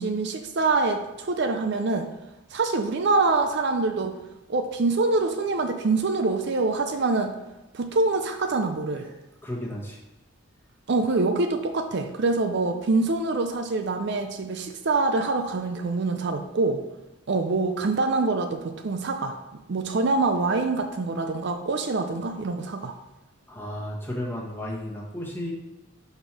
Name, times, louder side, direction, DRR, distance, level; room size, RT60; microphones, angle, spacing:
voice 1, 0.0-2.1 2.5-4.1 4.5-7.3 7.7-9.1 10.9-16.8 17.3-19.4 19.7-22.9, right 3 dB, 55° right, 6 dB, 0.5 m, -25 dB
voice 2, 9.4-10.0 23.5-25.5, left 1 dB, 10° left, -4 dB, 1.3 m, -33 dB
5.1 x 4.4 x 5.9 m, 1.0 s
head